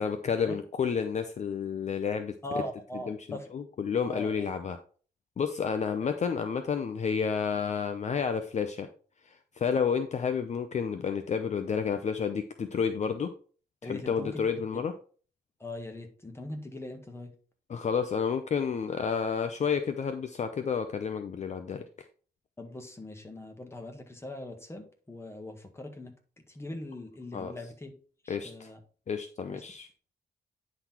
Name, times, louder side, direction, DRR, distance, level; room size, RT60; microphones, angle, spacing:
voice 1, 0.0-2.3 3.1-4.8 5.4-8.9 9.3-13.3 13.8-14.9 17.7-21.8 27.3-27.5 28.3-28.7 29.1-29.9, left 6 dB, 45° left, 8 dB, 0.7 m, -30 dB
voice 2, 2.4-3.5 4.0-4.4 13.8-14.4 15.6-17.3 22.6-26.1 26.5-27.9 28.2-28.8 29.5-29.6, left 1 dB, 15° left, 4 dB, 1.6 m, -40 dB
9.8 x 4.0 x 4.4 m, 0.41 s
cardioid pair, 120°, 17 cm